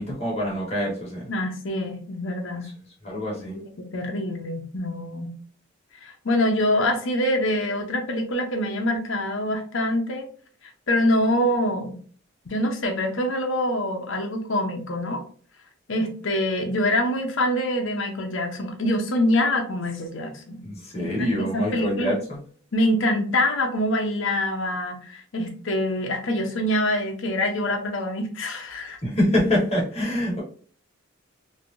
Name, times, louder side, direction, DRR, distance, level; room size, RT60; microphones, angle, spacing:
voice 1, 0.0-1.3 3.0-3.6 20.6-22.4 29.0-30.4, left 1 dB, 30° left, -4 dB, 1.4 m, -25 dB
voice 2, 1.3-2.7 3.5-5.3 6.0-10.3 10.9-12.0 12.4-15.2 15.9-20.6 21.0-22.2 22.7-29.0, left 1 dB, 65° left, 3 dB, 0.7 m, -25 dB
3.2 x 2.6 x 2.5 m, 0.43 s
head